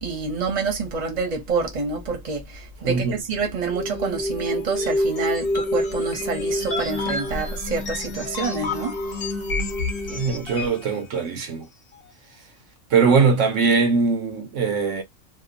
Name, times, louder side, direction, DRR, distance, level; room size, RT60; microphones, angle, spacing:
voice 1, 0.0-8.9, right 4 dB, 35° right, 0.9 m, -27 dB
voice 2, 2.8-3.2 10.1-11.7 12.9-15.0, right 5 dB, 70° right, 1.0 m, -21 dB
sound 1, 3.7-10.9, left 1 dB, 50° left, 0.9 m, -27 dB
2.8 x 2.4 x 2.4 m
omnidirectional pair, 1.4 m